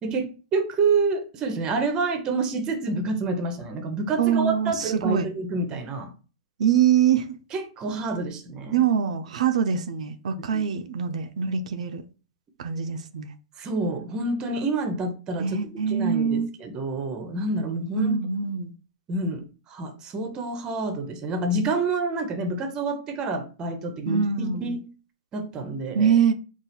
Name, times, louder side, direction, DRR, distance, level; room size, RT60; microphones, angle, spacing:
voice 1, 0.0-6.1 7.5-8.8 10.5-10.6 13.6-15.5 15.9-18.2 19.1-24.8 25.3-26.1, right 3 dB, 20° right, 0.7 m, -28 dB
voice 2, 4.2-5.3 6.6-7.4 8.7-12.0 12.6-13.3 15.4-16.5 17.9-18.7 24.1-24.8 25.9-26.3, right 7 dB, 75° right, 0.5 m, -24 dB
3.9 x 2.4 x 4.3 m
hypercardioid pair, 155°, 4 cm